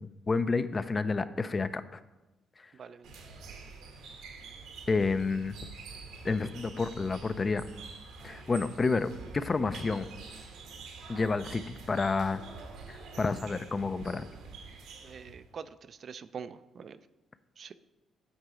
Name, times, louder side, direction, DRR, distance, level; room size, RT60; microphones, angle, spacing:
voice 1, 0.0-2.0 2.6-2.7 4.9-5.6 6.2-7.6 8.2-10.1 11.1-12.4 12.9-14.3, left 4 dB, 30° left, 12 dB, 0.4 m, -30 dB
sound 1, 3.0-15.5, right 4 dB, 90° right, 1.2 m, -47 dB
voice 2, 15.0-17.0 17.6-17.7, right 6 dB, 50° right, 13 dB, 0.3 m, -44 dB
8.0 x 4.7 x 5.0 m, 1.1 s
cardioid pair, 90°, 0 cm